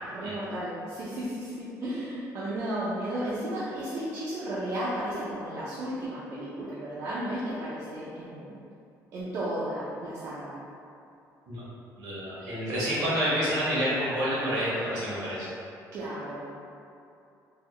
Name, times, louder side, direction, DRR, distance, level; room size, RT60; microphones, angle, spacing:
voice 1, 0.0-8.6 9.1-10.6 15.9-16.4, right 1 dB, 55° right, -9 dB, 0.5 m, -34 dB
voice 2, 12.0-15.5, equal, 80° right, -8 dB, 1.3 m, -28 dB
3.5 x 2.2 x 3.2 m, 2.6 s
cardioid pair, 150°, 6 cm